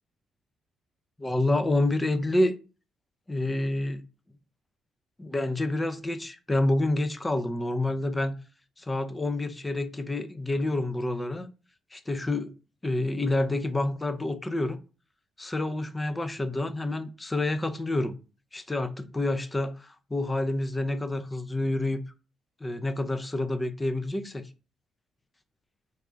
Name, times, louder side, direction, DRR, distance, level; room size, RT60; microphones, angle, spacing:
voice 1, 1.2-2.6 3.3-4.0 5.2-8.4 8.8-11.5 11.9-12.5 12.8-14.8 15.4-18.2 18.5-22.0 22.6-24.4, left 2 dB, 15° left, 0.5 m, -28 dB
3.3 x 2.5 x 3.3 m
cardioid pair, 90°, 0 cm